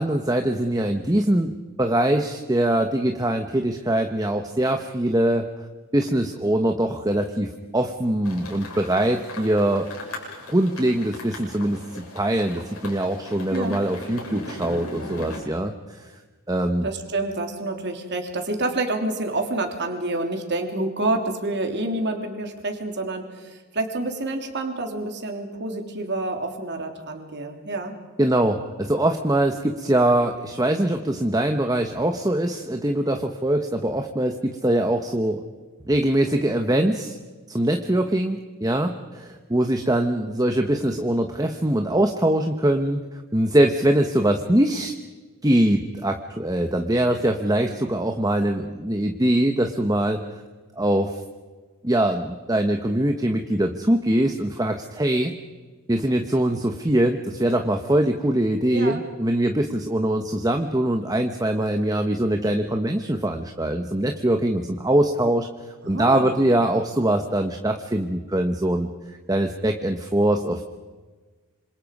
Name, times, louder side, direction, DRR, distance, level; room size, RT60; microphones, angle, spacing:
voice 1, 0.0-5.5 5.9-9.9 10.5-16.1 16.5-16.9 28.2-35.4 35.9-37.2 37.5-43.0 43.3-44.9 45.4-50.2 50.8-51.2 51.8-55.3 55.9-65.5 65.9-68.9 69.3-70.6, right 1 dB, 15° right, 5 dB, 1.1 m, -22 dB
sound 1, 8.2-15.4, left 2 dB, 80° left, 7.3 m, -38 dB
voice 2, 16.8-27.9 58.7-59.0 65.8-66.4, right 2 dB, 50° right, 4 dB, 3.4 m, -28 dB
27.0 x 26.5 x 5.4 m, 1.3 s
head